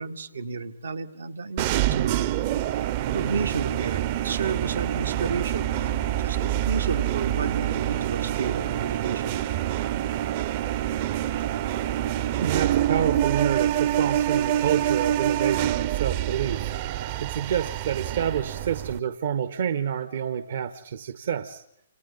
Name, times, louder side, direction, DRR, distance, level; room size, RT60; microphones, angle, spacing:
voice 1, 0.0-2.3 3.1-9.4, right 5 dB, 80° right, 7 dB, 1.8 m, -32 dB
sound 1, 1.6-19.0, right 12 dB, 40° right, 0.8 m, -26 dB
voice 2, 12.4-21.6, right 8 dB, 60° right, 10 dB, 1.2 m, -28 dB
29.0 x 27.0 x 4.1 m, 0.74 s
hypercardioid pair, 135°, 0 cm